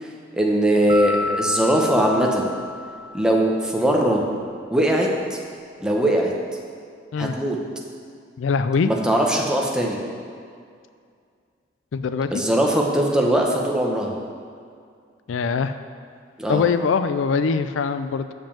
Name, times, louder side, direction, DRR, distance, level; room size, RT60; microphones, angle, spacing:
voice 1, 0.3-2.5 3.1-4.2 4.7-5.4 5.8-6.3 7.2-7.6 8.8-10.0 12.3-14.1 16.4-16.7, right 1 dB, 5° right, -1 dB, 0.9 m, -20 dB
sound 1, 0.9-3.7, left 1 dB, 25° right, 0.4 m, -30 dB
voice 2, 8.4-8.9 11.9-12.4 15.3-15.7 16.5-18.3, left 5 dB, 90° left, 11 dB, 0.4 m, -22 dB
7.5 x 5.3 x 7.2 m, 2.2 s
head